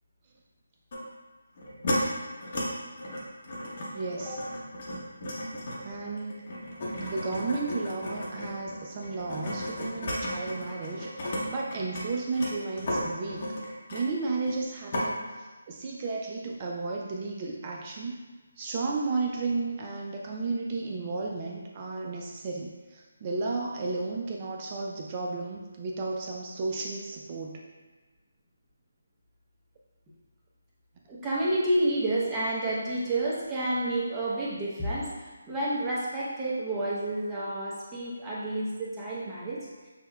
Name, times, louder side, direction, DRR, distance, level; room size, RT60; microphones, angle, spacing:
sound 1, 0.9-1.0 1.6-2.0 2.4-2.6 3.0-11.4 11.7-14.6 14.9-15.1, left 1 dB, 45° left, 0.8 m, -34 dB
voice 1, 3.9-4.4 5.8-6.4 7.0-13.5 13.9-18.2 18.6-27.6, right 3 dB, 30° right, -1 dB, 0.3 m, -33 dB
voice 2, 31.1-39.9, right 1 dB, 15° right, -8 dB, 0.7 m, -30 dB
5.9 x 2.2 x 2.2 m, 1.3 s
figure-of-eight pair, 160°, 0 cm